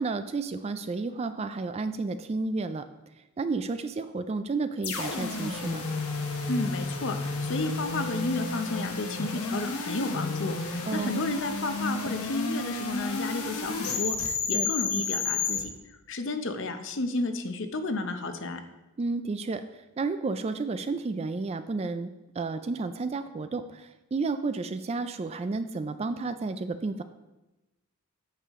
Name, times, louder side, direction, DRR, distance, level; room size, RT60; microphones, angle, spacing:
voice 1, 0.0-2.9 3.4-5.9 10.9-11.2 14.5-14.7 19.0-22.1 22.4-27.0, right 3 dB, 30° right, 10 dB, 0.3 m, -31 dB
sound 1, 4.8-15.6, left 3 dB, 75° left, 1.2 m, -31 dB
voice 2, 6.5-15.7 16.1-18.6, left 2 dB, 55° left, 7 dB, 0.7 m, -32 dB
8.2 x 6.9 x 3.6 m, 1.0 s
head